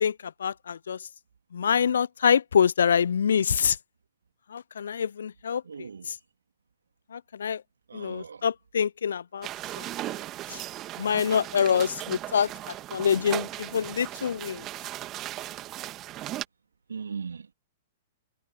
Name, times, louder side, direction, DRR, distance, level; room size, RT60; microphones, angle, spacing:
voice 1, 0.0-1.0 1.5-3.8 4.5-5.6 6.1-6.2 7.1-7.6 7.9-9.5 9.8-9.9 10.5-10.6 11.0-12.5 12.9-14.6, left 7 dB, 70° left, 0.7 m, -25 dB
voice 2, 5.6-6.1 7.9-8.4 16.9-17.5, right 5 dB, 75° right, 2.8 m, -38 dB
sound 1, 9.4-16.4, right 14 dB, 30° right, 2.1 m, -37 dB
figure-of-eight pair, 105°, 0 cm